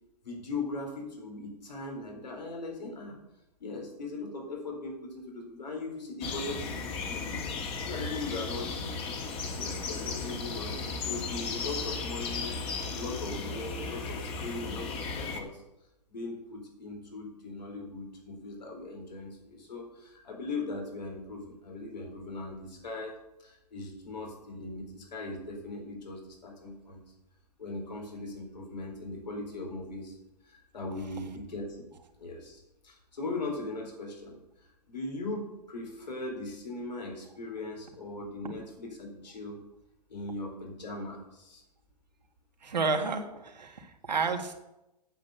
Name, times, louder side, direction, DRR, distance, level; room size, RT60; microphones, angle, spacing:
voice 1, 0.2-3.2 3.6-7.4 7.8-8.9 9.6-15.6 16.1-23.1 23.4-27.0 27.6-30.2 30.4-31.8 32.2-34.4 34.9-39.6 40.1-41.6, left 2 dB, 85° left, 0 dB, 4.2 m, -39 dB
sound 1, 6.2-15.4, left 4 dB, 25° left, 1.7 m, -35 dB
voice 2, 42.6-44.5, right 4 dB, 85° right, 4 dB, 1.9 m, -31 dB
8.9 x 8.7 x 6.7 m, 0.91 s
hypercardioid pair, 125°, 21 cm